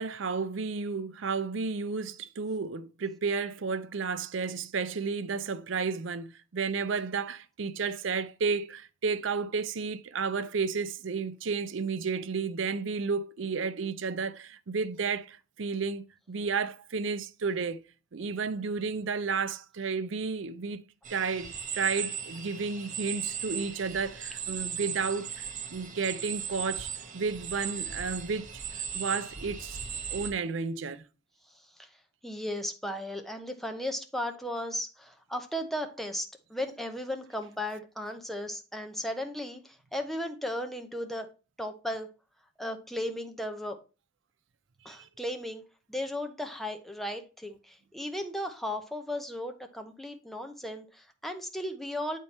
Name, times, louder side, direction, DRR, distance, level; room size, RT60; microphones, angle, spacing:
voice 1, 0.0-17.8 18.1-20.8 21.1-28.5 28.9-29.8 30.1-31.0 44.8-45.1, right 5 dB, 70° right, 0.5 m, -32 dB
sound 1, 21.0-30.3, right 7 dB, 40° right, 1.0 m, -37 dB
voice 2, 32.2-41.3 41.6-42.1 42.6-43.8 44.8-45.6 45.9-52.2, left 1 dB, ahead, 0.7 m, -35 dB
8.2 x 4.5 x 4.1 m
head